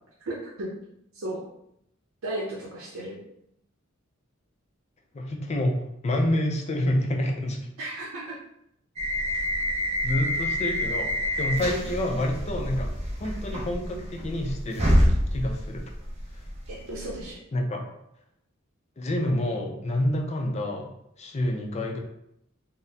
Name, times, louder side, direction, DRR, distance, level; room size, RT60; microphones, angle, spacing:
voice 1, 0.2-0.7 1.1-1.4 2.2-3.2 7.8-8.4 11.7-11.9 16.7-17.4, right 1 dB, 85° right, -5 dB, 0.6 m, -34 dB
voice 2, 5.1-7.7 10.0-12.9 13.2-15.8 16.3-16.4 17.5-17.9 19.0-20.9 21.2-22.0, left 1 dB, 35° left, 2 dB, 0.4 m, -28 dB
sound 1, 9.0-17.3, equal, 30° right, 0.6 m, -27 dB
3.9 x 2.0 x 2.7 m, 0.76 s
head